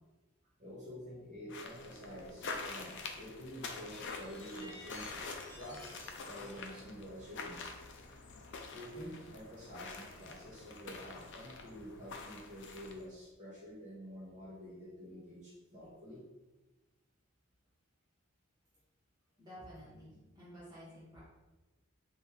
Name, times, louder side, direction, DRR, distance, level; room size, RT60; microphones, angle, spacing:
voice 1, 0.6-5.3 5.6-7.6 8.7-16.2, equal, 35° right, -6 dB, 1.4 m, -48 dB
sound 1, 1.5-13.1, left 4 dB, 60° left, 0.5 m, -46 dB
sound 2, 3.9-7.7 8.5-8.6 10.5-10.6, equal, 10° left, 0.9 m, -56 dB
voice 2, 19.4-21.2, equal, 20° right, -10 dB, 1.4 m, -52 dB
5.1 x 2.7 x 3.6 m, 1.1 s
head